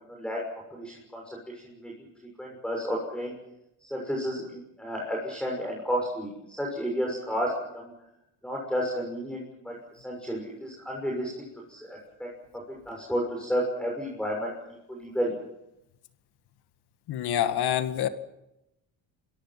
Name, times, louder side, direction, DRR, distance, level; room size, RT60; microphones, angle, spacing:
voice 1, 0.1-0.4 0.7-1.9 2.4-3.3 3.8-7.9 8.4-12.3 12.7-14.5 14.9-15.3, equal, ahead, -1 dB, 6.5 m, -32 dB
voice 2, 17.1-18.1, left 11 dB, 70° left, 9 dB, 1.9 m, -26 dB
27.5 x 23.0 x 5.9 m, 0.88 s
cardioid pair, 110°, 40 cm